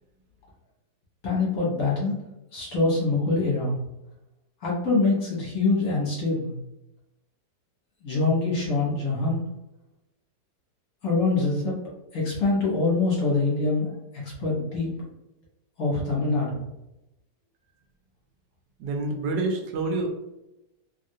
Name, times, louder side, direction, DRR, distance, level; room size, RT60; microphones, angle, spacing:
voice 1, 1.2-2.1 2.5-3.8 4.6-6.5 8.0-9.4 11.0-11.7 12.1-14.9 15.8-16.6, left 3 dB, 55° left, -5 dB, 1.4 m, -24 dB
voice 2, 18.8-20.3, right 2 dB, 80° right, 3 dB, 1.3 m, -28 dB
3.2 x 2.4 x 2.7 m, 0.91 s
omnidirectional pair, 1.9 m